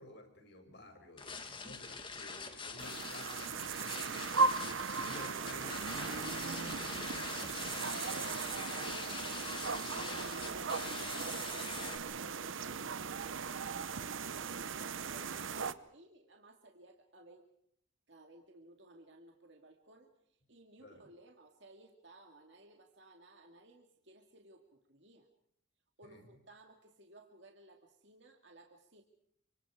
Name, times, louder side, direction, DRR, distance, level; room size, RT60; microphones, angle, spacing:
voice 1, 0.0-4.5 4.9-8.1 8.8-9.3 9.8-10.1 12.5-12.7 15.5-15.6 20.8-21.1 26.0-26.2, left 1 dB, 60° left, 5 dB, 6.2 m, -54 dB
sound 1, 1.2-12.0, left 4 dB, 25° left, 2.3 m, -44 dB
sound 2, 2.8-15.7, right 4 dB, 80° right, 0.9 m, -37 dB
voice 2, 7.6-7.9 15.0-17.5 18.1-25.3 26.0-29.0, right 2 dB, 65° right, 3 dB, 2.3 m, -59 dB
29.5 x 26.0 x 4.9 m, 0.71 s
head